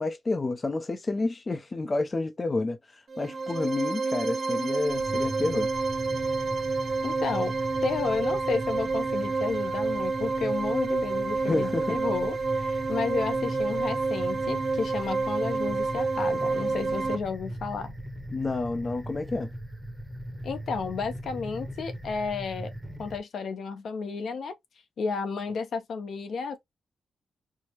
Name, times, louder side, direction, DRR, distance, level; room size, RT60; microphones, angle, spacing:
voice 1, 0.0-5.7 11.5-12.0 18.3-19.5, left 3 dB, 25° left, 0.4 m, -29 dB
sound 1, 3.1-17.2, right 3 dB, 45° right, 0.8 m, -29 dB
sound 2, 4.8-23.2, equal, 5° right, 0.8 m, -40 dB
voice 2, 7.0-7.6 7.8-17.9 20.4-22.7 23.0-24.5 25.0-26.6, left 5 dB, 70° left, 0.6 m, -32 dB
4.5 x 2.0 x 2.8 m
wide cardioid pair, 145°, 0 cm